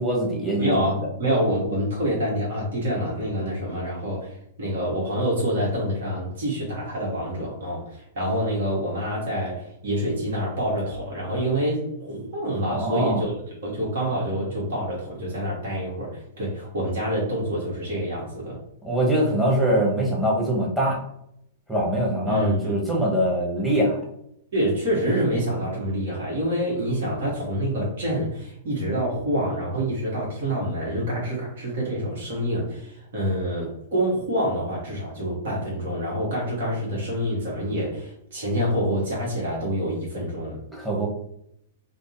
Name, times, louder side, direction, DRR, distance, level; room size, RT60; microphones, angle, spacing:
voice 1, 0.0-1.1 12.7-13.2 18.8-21.0 21.7-24.0 40.7-41.1, right 1 dB, 5° right, -4 dB, 1.1 m, -23 dB
voice 2, 0.6-18.6 22.3-22.7 24.5-40.6, equal, 55° right, -4 dB, 1.2 m, -27 dB
5.0 x 2.1 x 2.6 m, 0.74 s
figure-of-eight pair, 105°, 0 cm